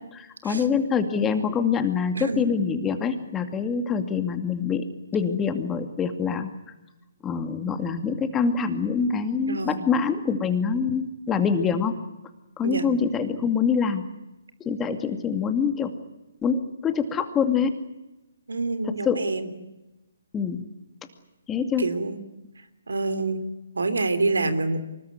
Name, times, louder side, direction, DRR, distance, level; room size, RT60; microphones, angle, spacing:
voice 1, 0.1-4.9 5.1-6.5 7.2-12.0 12.6-14.0 14.6-15.9 16.4-17.8 18.8-19.3 20.3-20.6 21.5-21.9, left 6 dB, 15° left, 8 dB, 2.3 m, -25 dB
voice 2, 2.2-2.5 9.5-9.8 12.6-12.9 18.5-19.5 21.8-22.2 22.9-23.4 23.7-24.8, right 3 dB, 80° right, 12 dB, 3.2 m, -27 dB
25.0 x 21.0 x 9.6 m, 0.99 s
figure-of-eight pair, 140°, 0 cm